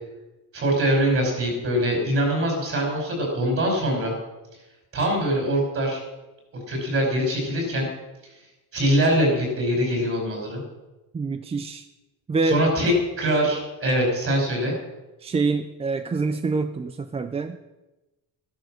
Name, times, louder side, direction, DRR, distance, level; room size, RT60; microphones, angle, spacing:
voice 1, 0.5-4.1 4.9-6.0 6.7-7.9 8.7-10.6 12.4-14.7, equal, 35° right, 0 dB, 5.6 m, -23 dB
voice 2, 11.1-11.8 12.3-12.6 15.2-17.6, right 4 dB, 15° right, 9 dB, 0.4 m, -26 dB
14.0 x 12.0 x 6.4 m, 1.1 s
cardioid pair, 170°, 36 cm